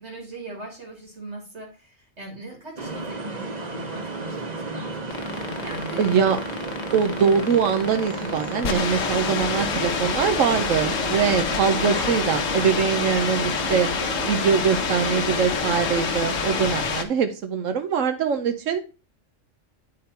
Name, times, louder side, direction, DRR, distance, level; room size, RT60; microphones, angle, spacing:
voice 1, 0.0-6.0 11.3-11.7, right 2 dB, 60° right, 0 dB, 2.0 m, -40 dB
sound 1, 2.8-16.7, right 3 dB, 35° right, 1.2 m, -33 dB
sound 2, 5.1-17.0, left 5 dB, 75° left, 1.2 m, -27 dB
voice 2, 6.0-6.4 6.9-13.9 14.2-18.8, right 7 dB, 75° right, 8 dB, 1.1 m, -23 dB
8.7 x 3.7 x 4.4 m, 0.32 s
omnidirectional pair, 1.4 m